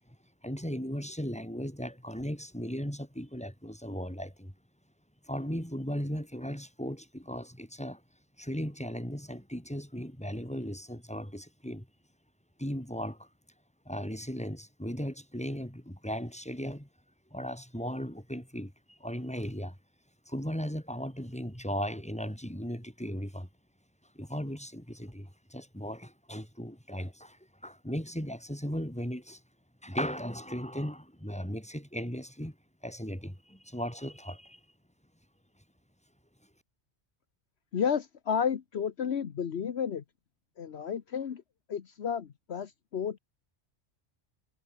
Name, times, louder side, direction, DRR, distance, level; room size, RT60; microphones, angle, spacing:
voice 1, 0.4-4.5 5.3-8.0 8.4-11.9 12.6-13.3 13.9-16.9 17.3-19.7 20.3-23.5 24.2-27.4 27.6-29.4 29.8-32.5 32.8-34.6, equal, 5° left, 5.9 m, -37 dB
voice 2, 37.7-40.0 40.6-41.4 41.7-43.2, left 7 dB, 70° left, 1.3 m, -32 dB
omnidirectional pair, 1.2 m